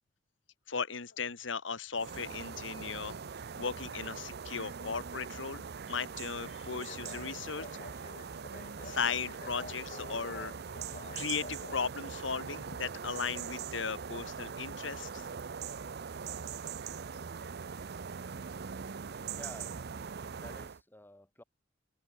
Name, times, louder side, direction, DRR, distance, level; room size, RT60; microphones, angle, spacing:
voice 1, 0.7-3.1 3.6-5.6 5.9-7.6 8.8-10.5 11.1-15.3, left 5 dB, 80° left, 1.4 m, -37 dB
sound 1, 1.9-20.8, right 6 dB, 60° right, 0.6 m, -42 dB
sound 2, 6.7-11.9, left 3 dB, 45° left, 7.3 m, -49 dB
voice 2, 19.3-19.8 20.3-21.4, left 1 dB, 10° left, 4.6 m, -51 dB
head